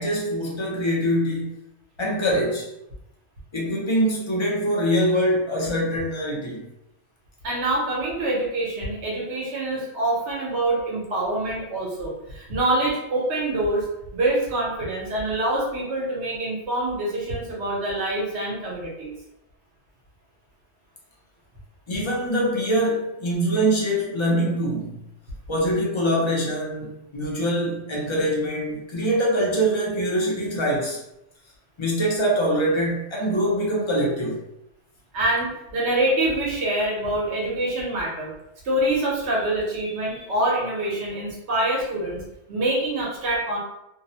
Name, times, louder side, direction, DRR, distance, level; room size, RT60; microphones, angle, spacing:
voice 1, 0.0-1.6 2.0-2.7 3.5-6.6 21.9-25.0 25.5-31.0 31.8-34.4, equal, 40° left, -3 dB, 0.4 m, -24 dB
voice 2, 7.4-13.9 14.1-19.1 35.1-38.3 38.6-42.2 42.5-43.6, right 1 dB, 70° right, -4 dB, 1.1 m, -25 dB
2.6 x 2.0 x 2.7 m, 0.86 s
omnidirectional pair, 1.2 m